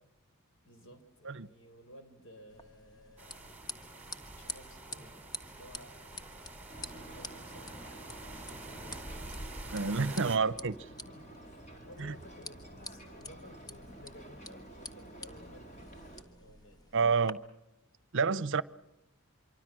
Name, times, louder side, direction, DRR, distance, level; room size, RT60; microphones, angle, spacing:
voice 1, 0.6-3.5 4.2-5.2 5.5-6.4 6.8-7.9 8.3-9.3 9.7-15.9 16.2-16.8, left 1 dB, 60° left, 4.3 m, -56 dB
sound 1, 2.5-17.3, left 2 dB, 20° left, 1.5 m, -49 dB
sound 2, 3.2-10.4, right 2 dB, 5° right, 3.1 m, -46 dB
Ocean, 6.7-16.2, right 1 dB, 35° left, 4.1 m, -50 dB
voice 2, 9.7-10.8 12.0-12.1 16.9-17.4 18.1-18.6, right 5 dB, 60° right, 0.7 m, -28 dB
26.0 x 24.0 x 6.2 m
head